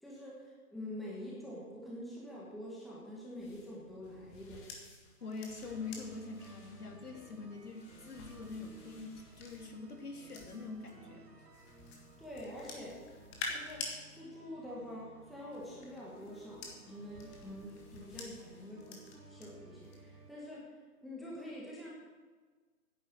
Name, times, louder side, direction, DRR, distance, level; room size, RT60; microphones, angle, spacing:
voice 1, 0.0-4.7 12.2-13.0 13.5-13.9 14.1-20.7 21.0-22.1, left 1 dB, ahead, -6 dB, 1.5 m, -46 dB
sound 1, 3.4-10.9 11.5-14.0 15.2-19.5 19.8-20.2, left 3 dB, 20° left, 1.7 m, -49 dB
voice 2, 5.2-11.4, left 4 dB, 75° left, 2 dB, 3.3 m, -44 dB
sound 2, 5.2-20.3, right 3 dB, 85° right, 2.1 m, -58 dB
11.0 x 10.0 x 7.9 m, 1.4 s
figure-of-eight pair, 150°, 46 cm